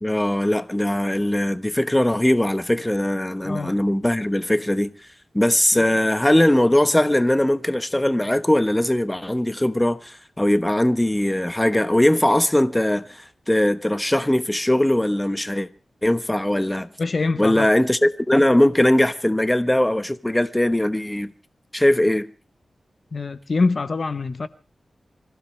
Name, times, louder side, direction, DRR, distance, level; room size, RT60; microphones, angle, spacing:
voice 1, 0.0-4.9 5.3-15.7 16.0-16.9 17.4-21.3 21.7-22.3, left 1 dB, 10° left, 1.1 m, -20 dB
voice 2, 17.0-17.7 23.1-24.5, left 3 dB, 55° left, 0.9 m, -24 dB
26.0 x 15.5 x 3.3 m
wide cardioid pair, 85°, 0 cm